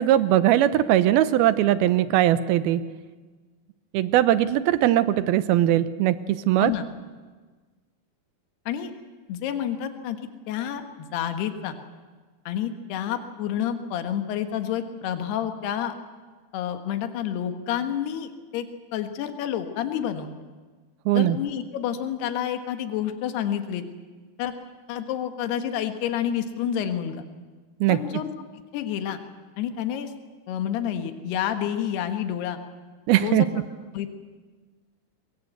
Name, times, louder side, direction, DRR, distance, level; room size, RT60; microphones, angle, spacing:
voice 1, 0.0-2.8 3.9-6.7 21.1-21.4 27.8-28.0 33.1-33.5, right 13 dB, 75° right, 13 dB, 2.6 m, -20 dB
voice 2, 9.3-10.2 10.5-11.8 12.5-15.9 16.5-20.3 21.1-23.9 24.4-24.5 24.9-27.2 27.9-28.3 28.7-29.2 29.6-30.1 30.5-32.6 33.2-33.5 33.9-34.1, left 10 dB, 80° left, 7 dB, 3.5 m, -29 dB
23.5 x 21.5 x 8.1 m, 1.4 s
omnidirectional pair, 4.6 m